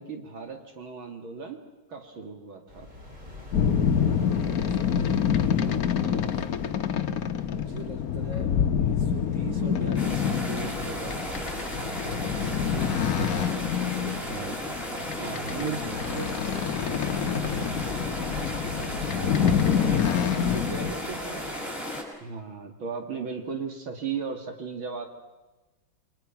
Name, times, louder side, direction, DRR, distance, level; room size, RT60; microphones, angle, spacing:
voice 1, 0.0-1.6 1.9-2.9 5.6-5.8 15.2-16.0 22.2-25.1, right 5 dB, 75° right, 4 dB, 3.1 m, -36 dB
sound 1, 2.7-21.6, left 2 dB, 20° right, 4.4 m, -43 dB
sound 2, 3.5-20.9, left 8 dB, 55° left, 1.3 m, -27 dB
voice 2, 4.5-5.0 5.8-6.8 7.4-11.2 11.9-12.5 13.4-14.6 15.4-16.3 17.5-17.8 19.1-21.5, right 3 dB, 35° right, 4 dB, 3.4 m, -40 dB
sound 3, 10.0-22.0, equal, 5° left, 6.0 m, -35 dB
29.0 x 23.5 x 5.9 m, 1.1 s
omnidirectional pair, 2.2 m